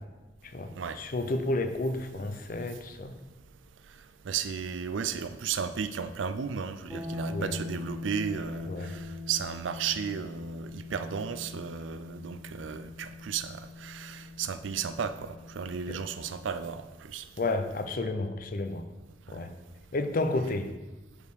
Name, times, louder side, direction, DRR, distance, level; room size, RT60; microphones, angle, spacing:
voice 1, 0.5-3.1 7.3-7.5 8.7-8.9 17.4-18.8 19.3-19.5 19.9-20.7, left 2 dB, 50° left, 0.6 m, -31 dB
voice 2, 4.3-9.0 9.3-16.8 17.1-17.2, right 7 dB, 90° right, 0.4 m, -34 dB
sound 1, 6.9-16.7, left 3 dB, 5° left, 2.0 m, -42 dB
5.2 x 4.8 x 6.3 m
head